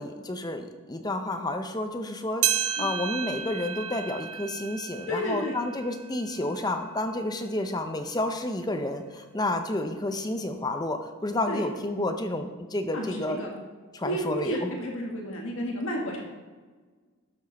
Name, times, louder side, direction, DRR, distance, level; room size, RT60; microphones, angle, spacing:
voice 1, 0.0-13.4 13.9-14.7, left 1 dB, 15° left, 6 dB, 0.6 m, -30 dB
sound 1, 2.4-7.1 7.6-7.7 8.5-8.6 9.5-9.6, right 9 dB, 90° right, 0.6 m, -32 dB
voice 2, 5.1-5.6 11.5-11.6 12.9-13.5 13.9-16.2, equal, 65° left, 0 dB, 1.7 m, -31 dB
12.5 x 6.6 x 4.1 m, 1.4 s
head